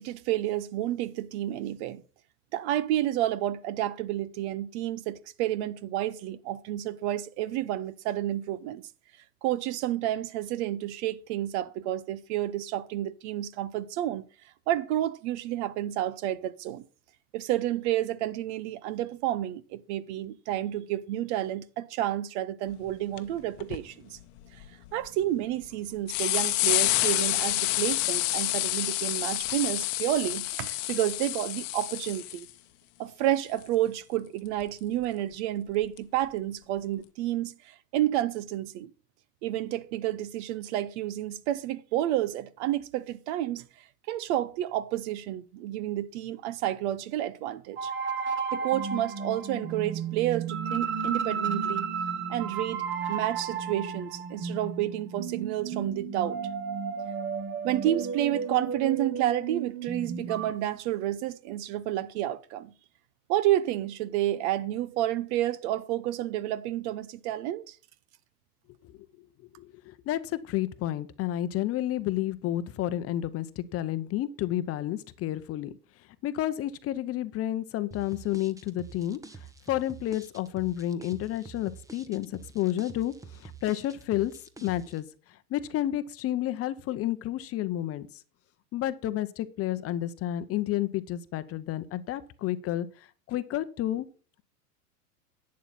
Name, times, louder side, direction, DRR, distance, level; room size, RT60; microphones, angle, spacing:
voice 1, 0.0-2.0 2.5-8.8 9.4-14.3 14.7-16.8 17.3-24.2 24.9-32.5 33.0-38.9 39.4-47.9 48.5-51.9 52.3-56.4 57.6-62.7 63.3-67.8, right 13 dB, 45° right, 0.8 m, -30 dB
sound 1, 22.9-23.0 23.2-23.3 23.6-23.8 24.4-25.1 25.7-25.8 26.1-32.5 34.6-34.7 36.0-36.1, left 18 dB, 50° left, 1.0 m, -28 dB
sound 2, 47.8-60.5, right 6 dB, 25° right, 1.3 m, -33 dB
voice 2, 69.6-75.7 76.2-79.2 79.7-84.3 84.6-85.1 85.5-88.1 88.7-92.9 93.3-94.1, left 13 dB, 30° left, 0.8 m, -30 dB
sound 3, 77.9-85.0, right 5 dB, 5° right, 1.0 m, -47 dB
11.0 x 8.5 x 4.2 m
hypercardioid pair, 95°, 47 cm